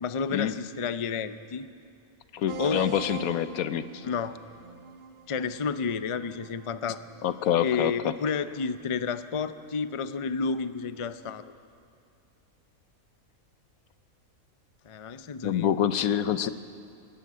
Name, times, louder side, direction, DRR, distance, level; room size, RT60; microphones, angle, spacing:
voice 1, 0.0-1.7 2.6-2.8 4.0-4.3 5.3-7.0 7.6-11.5 14.9-15.7, left 5 dB, 55° left, 12 dB, 0.3 m, -31 dB
voice 2, 2.3-4.0 7.2-8.1 15.4-16.5, left 10 dB, 85° left, 13 dB, 1.2 m, -26 dB
sound 1, 2.5-7.8, right 3 dB, 45° right, 0.8 m, -42 dB
27.5 x 11.0 x 8.7 m, 2.4 s
omnidirectional pair, 1.5 m